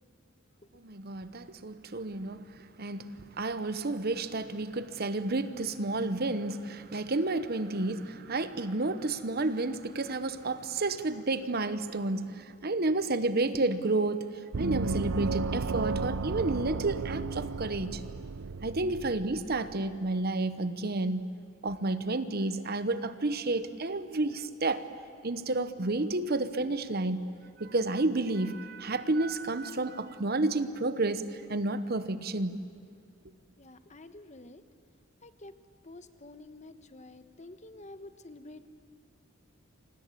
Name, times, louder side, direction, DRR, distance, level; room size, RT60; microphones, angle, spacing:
voice 1, 0.7-14.3 14.6-18.0 18.6-21.4 21.6-24.9 25.2-32.6, right 2 dB, 50° right, 12 dB, 1.0 m, -31 dB
Gong, 14.5-19.8, right 4 dB, 85° right, 0.6 m, -33 dB
voice 2, 33.6-34.6 35.2-35.5 35.8-38.7, left 2 dB, 35° left, 10 dB, 1.2 m, -49 dB
28.5 x 24.5 x 8.4 m, 2.3 s
head